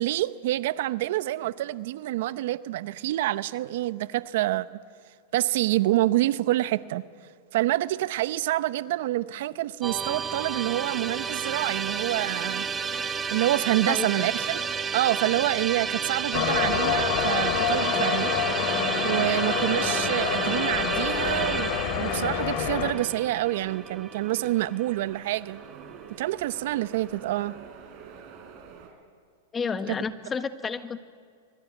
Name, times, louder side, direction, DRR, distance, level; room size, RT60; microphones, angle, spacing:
voice 1, 0.0-4.8 5.3-7.0 7.5-13.0 13.3-14.6 14.9-18.4 19.0-25.6 26.2-27.5 29.9-30.0, right 15 dB, 65° right, 15 dB, 0.8 m, -27 dB
Musical instrument, 9.8-25.0, right 5 dB, 15° right, 1.5 m, -31 dB
sound 1, 10.0-28.9, right 6 dB, 40° right, 5.4 m, -46 dB
voice 2, 13.8-14.3 29.5-31.0, left 5 dB, 15° left, 11 dB, 1.3 m, -31 dB
sound 2, 16.3-22.9, left 7 dB, 50° left, 3.3 m, -27 dB
24.5 x 22.5 x 9.3 m, 2.2 s
hypercardioid pair, 130°, 0 cm